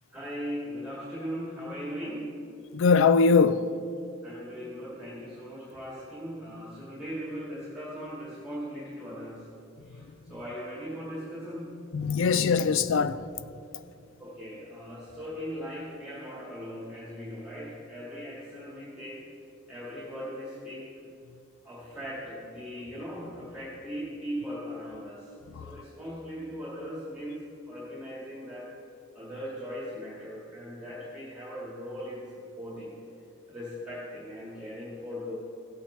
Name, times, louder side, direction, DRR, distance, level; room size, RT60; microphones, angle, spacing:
voice 1, 0.1-2.3 4.2-9.5 9.8-11.8 14.2-19.2 19.7-20.9 21.6-25.3 25.6-28.7 29.1-32.9 33.5-35.3, equal, 5° right, 1.9 m, -39 dB
voice 2, 2.7-3.7 11.9-13.2, left 5 dB, 65° left, 0.4 m, -21 dB
15.5 x 8.7 x 3.2 m
head